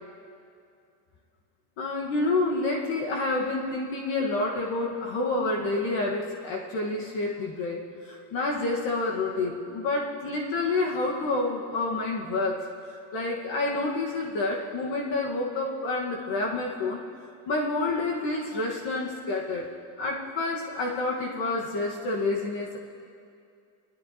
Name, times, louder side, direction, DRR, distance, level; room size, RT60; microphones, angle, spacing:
voice 1, 1.8-12.7 13.1-17.0 17.5-19.7 20.0-22.8, left 2 dB, 65° left, -1 dB, 1.5 m, -28 dB
20.0 x 13.0 x 2.8 m, 2.4 s
cardioid pair, 110°, 47 cm